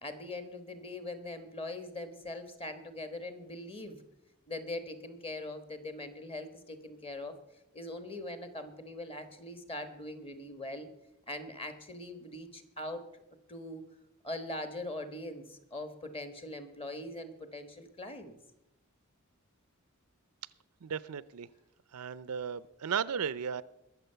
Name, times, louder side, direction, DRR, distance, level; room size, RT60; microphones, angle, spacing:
voice 1, 0.0-4.0 4.5-7.3 7.7-10.9 11.3-13.0 13.5-13.8 14.2-18.3, left 1 dB, 25° left, 9 dB, 1.3 m, -41 dB
voice 2, 20.8-21.5 21.9-23.6, right 7 dB, 90° right, 18 dB, 0.5 m, -35 dB
21.5 x 7.3 x 5.7 m, 0.88 s
head